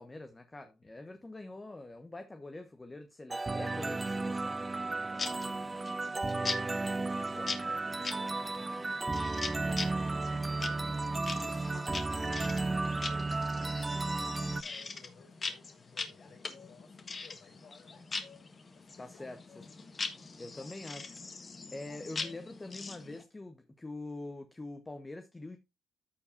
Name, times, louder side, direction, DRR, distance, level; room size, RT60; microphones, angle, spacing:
voice 1, 0.0-5.3 7.2-7.6 19.0-19.6 20.4-25.6, left 2 dB, 20° left, 0.9 m, -45 dB
voice 2, 0.8-1.2 7.9-18.1 18.7-19.7, left 5 dB, 70° left, 5.4 m, -61 dB
sound 1, 3.3-14.6, right 3 dB, 20° right, 0.3 m, -34 dB
sound 2, 5.2-23.2, left 4 dB, 35° left, 1.4 m, -42 dB
14.0 x 4.7 x 2.6 m
cardioid pair, 90°, 0 cm